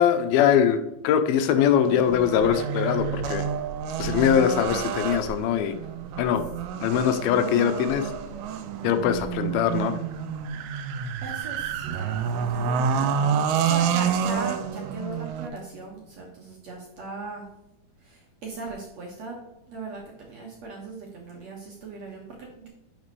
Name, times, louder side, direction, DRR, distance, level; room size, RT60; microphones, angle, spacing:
voice 1, 0.0-3.5 4.0-5.8 6.2-6.4 6.8-8.1 8.8-10.0, left 8 dB, 80° left, 8 dB, 2.4 m, -22 dB
sound 1, 1.9-15.5, right 7 dB, 85° right, 2.5 m, -28 dB
voice 2, 11.2-17.5 18.0-19.4 19.7-22.7, right 3 dB, 60° right, -1 dB, 1.9 m, -39 dB
11.0 x 5.2 x 3.2 m, 0.91 s
omnidirectional pair, 4.4 m